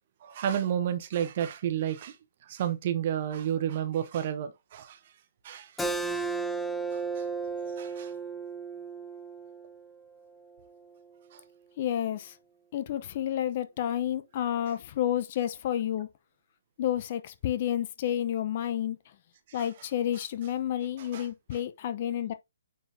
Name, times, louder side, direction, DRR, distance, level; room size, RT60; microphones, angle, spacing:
voice 1, 0.2-2.2 2.4-5.0 5.4-5.8 6.1-6.2 6.9-7.2 7.6-8.1 11.3-11.4 19.6-19.7 21.0-21.3, right 10 dB, 35° right, 0.9 m, -31 dB
Keyboard (musical), 5.8-11.0, right 4 dB, 5° left, 0.5 m, -35 dB
voice 2, 11.8-12.3 12.7-16.1 16.8-19.0 19.5-22.3, left 11 dB, 35° left, 0.8 m, -30 dB
9.1 x 3.9 x 2.7 m
figure-of-eight pair, 135°, 0 cm